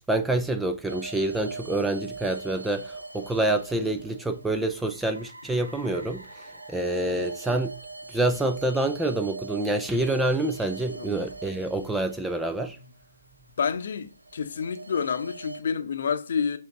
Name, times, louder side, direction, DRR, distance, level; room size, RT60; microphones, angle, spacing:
voice 1, 0.0-6.2 6.7-7.7 8.1-12.8, right 2 dB, 5° right, 0.4 m, -27 dB
sound 1, 0.9-13.0 14.1-15.6, right 3 dB, 80° right, 0.8 m, -42 dB
voice 2, 7.0-7.3 10.9-11.1 12.5-12.9 13.6-16.6, left 6 dB, 50° left, 0.8 m, -30 dB
7.4 x 3.8 x 3.7 m
figure-of-eight pair, 130°, 0 cm